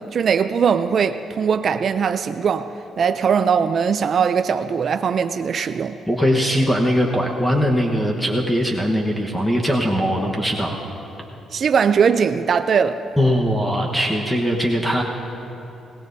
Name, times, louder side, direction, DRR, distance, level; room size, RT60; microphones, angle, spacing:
voice 1, 0.0-2.7 3.0-6.0 11.5-13.0, right 6 dB, 55° right, 10 dB, 0.4 m, -20 dB
voice 2, 6.1-10.8 13.2-15.0, equal, 5° left, 0 dB, 1.2 m, -20 dB
20.5 x 17.5 x 2.7 m, 2.9 s
cardioid pair, 90°, 0 cm